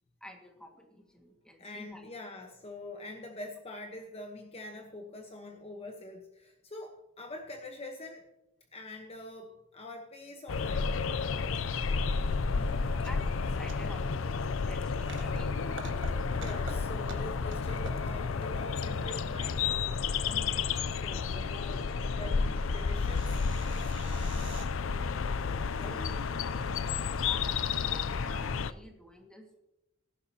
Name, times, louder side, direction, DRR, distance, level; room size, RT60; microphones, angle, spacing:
voice 1, 0.2-2.0 11.5-11.6 12.5-15.9 25.8-26.6 27.1-27.4 27.9-29.6, left 1 dB, 5° left, 2 dB, 1.9 m, -50 dB
voice 2, 1.6-8.2 8.7-10.9 16.3-19.6 20.0-20.6 20.9-23.8 25.8-26.0, left 2 dB, 30° left, 3 dB, 1.1 m, -45 dB
sound 1, 10.5-28.7, left 5 dB, 85° left, 0.5 m, -31 dB
sound 2, 12.3-12.4 12.6-14.0 14.3-14.4 14.8-15.4 15.7-16.7 17.0-17.6 17.8-18.5 20.3-20.6 21.7-21.8 22.1-22.2 22.6-22.7 23.0-24.7, right 4 dB, 70° right, 1.7 m, -47 dB
17.5 x 11.0 x 2.9 m, 0.91 s
head